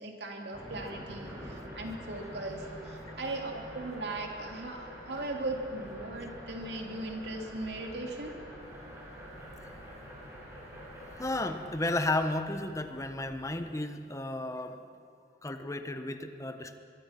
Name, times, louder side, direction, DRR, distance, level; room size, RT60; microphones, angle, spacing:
voice 1, 0.0-8.3, right 2 dB, 70° right, 2 dB, 2.9 m, -38 dB
sound 1, 0.5-11.7, equal, 15° right, 6.1 m, -46 dB
sound 2, 5.6-13.3, equal, 50° left, 5.0 m, -57 dB
voice 2, 11.2-14.8 15.4-16.8, left 2 dB, 20° left, 7 dB, 1.2 m, -33 dB
24.0 x 23.0 x 6.0 m, 2.5 s
head